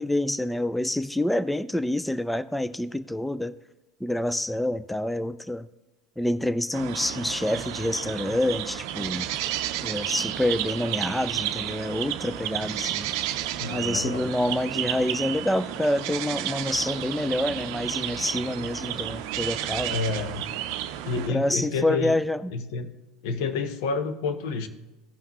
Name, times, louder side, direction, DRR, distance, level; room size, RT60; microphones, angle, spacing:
voice 1, 0.0-3.5 4.0-5.7 6.2-9.3 9.8-13.1 13.7-20.2 21.3-22.4, left 1 dB, 5° left, 15 dB, 0.3 m, -27 dB
sound 1, 6.7-21.3, right 12 dB, 65° right, 0.5 m, -32 dB
voice 2, 13.6-14.3 19.9-20.5 21.0-22.2 22.5-22.9 23.2-24.7, left 4 dB, 70° left, 8 dB, 0.9 m, -29 dB
16.0 x 5.7 x 3.0 m, 1.1 s
hypercardioid pair, 85°, 2 cm